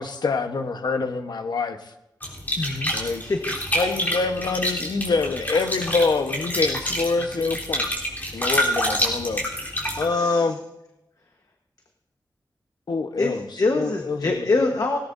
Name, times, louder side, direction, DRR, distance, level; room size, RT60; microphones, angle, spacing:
voice 1, 0.0-1.8 2.9-3.2 3.7-7.9 8.3-9.4 10.0-10.6 12.9-13.4 13.8-14.3, left 4 dB, 90° left, 7 dB, 1.1 m, -25 dB
sound 1, 2.2-10.0, equal, 25° left, 3.7 m, -27 dB
voice 2, 2.6-2.9 3.2-3.5 10.1-10.4 13.2-15.0, left 3 dB, 55° left, 3 dB, 1.3 m, -24 dB
18.5 x 18.0 x 2.7 m, 0.88 s
wide cardioid pair, 105°, 7 cm